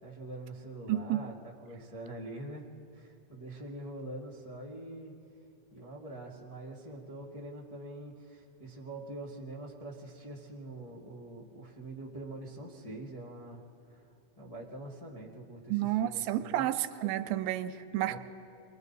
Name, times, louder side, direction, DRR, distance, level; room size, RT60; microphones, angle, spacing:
voice 1, 0.0-2.6 2.9-5.1 5.7-13.6 13.9-14.1 14.4-16.7 18.0-18.2, right 1 dB, 45° left, -5 dB, 0.4 m, -44 dB
voice 2, 0.9-1.2 15.7-18.2, right 13 dB, 80° right, 11 dB, 2.4 m, -31 dB
29.5 x 22.0 x 4.1 m, 2.7 s
omnidirectional pair, 4.3 m